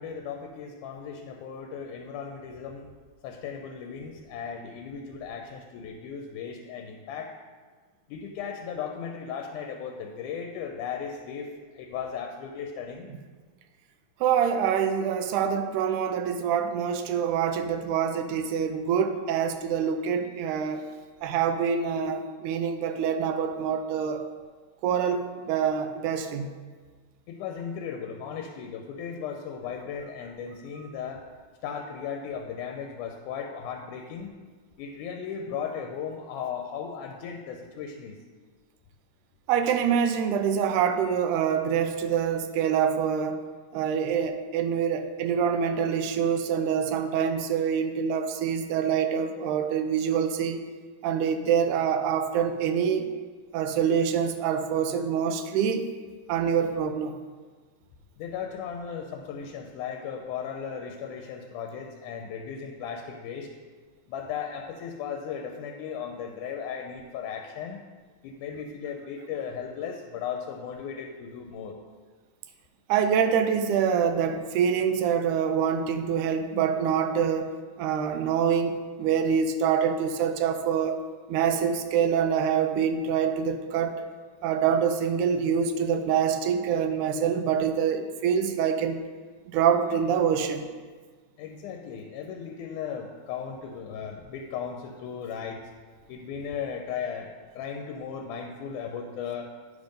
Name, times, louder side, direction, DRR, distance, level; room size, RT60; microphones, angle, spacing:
voice 1, 0.0-2.9 3.2-7.3 8.1-11.5 11.8-13.1 27.3-31.2 31.6-34.3 34.8-38.2 58.2-63.5 64.1-67.8 68.2-71.7 91.4-95.6 96.1-99.5, left 7 dB, 85° left, 3 dB, 2.1 m, -36 dB
voice 2, 14.2-20.9 21.2-24.3 24.8-26.5 39.5-43.4 43.7-50.6 51.0-53.1 53.5-55.9 56.3-57.2 72.9-77.5 77.8-84.0 84.4-89.0 89.5-90.7, right 7 dB, 85° right, 8 dB, 2.0 m, -25 dB
9.5 x 3.6 x 5.1 m, 1.5 s
omnidirectional pair, 3.5 m